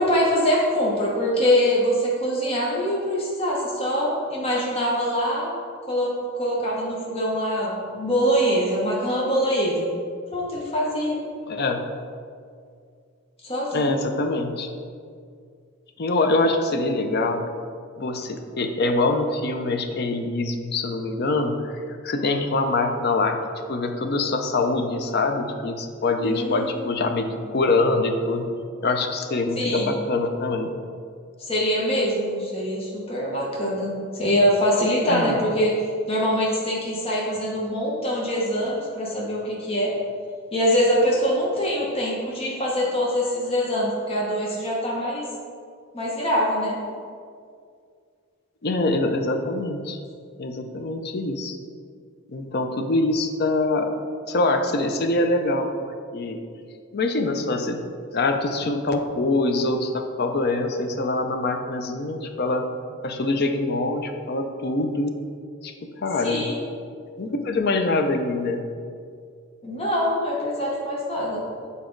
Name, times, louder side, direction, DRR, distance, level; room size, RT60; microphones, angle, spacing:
voice 1, 0.0-5.5 5.9-9.9 10.3-11.2 13.4-13.9 26.2-27.3 29.6-29.9 31.5-35.7 36.1-39.9 40.5-45.2 45.9-46.8 66.2-66.6 69.6-71.4, equal, 30° left, -4 dB, 0.9 m, -24 dB
voice 2, 11.5-11.8 13.7-14.7 16.0-17.5 18.0-23.4 23.7-28.5 28.8-30.7 35.1-35.4 48.6-50.0 50.4-51.6 52.3-53.9 54.3-56.4 56.9-57.8 58.1-62.7 63.0-65.1 65.6-66.5 67.2-68.7, left 2 dB, 50° left, 5 dB, 0.5 m, -24 dB
7.0 x 4.2 x 3.8 m, 2.2 s
head